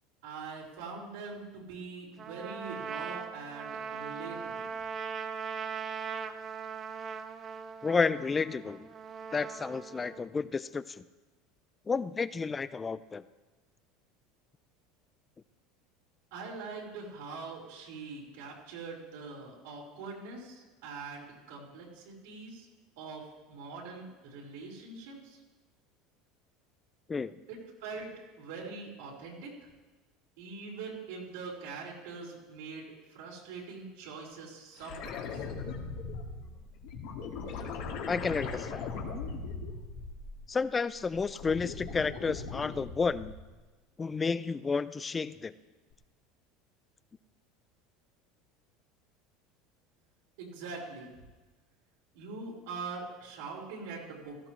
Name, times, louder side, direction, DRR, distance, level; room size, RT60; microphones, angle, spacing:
voice 1, 0.2-4.7 16.3-22.7 23.0-25.4 27.5-28.1 28.4-29.5 30.4-35.5 50.4-51.1 52.1-54.4, right 4 dB, 85° right, -3 dB, 4.5 m, -43 dB
Trumpet, 2.2-10.2, right 6 dB, 30° right, 0.7 m, -40 dB
voice 2, 7.8-8.9 9.3-11.0 11.9-13.2 27.1-27.3 38.1-38.9 40.5-43.3 44.0-45.5, left 4 dB, 20° left, 16 dB, 0.4 m, -31 dB
sound 1, 34.8-40.6 41.0-43.5 45.9-46.0, left 4 dB, 70° left, 2.2 m, -39 dB
16.5 x 13.5 x 3.2 m, 1.2 s
supercardioid pair, 125°, 0 cm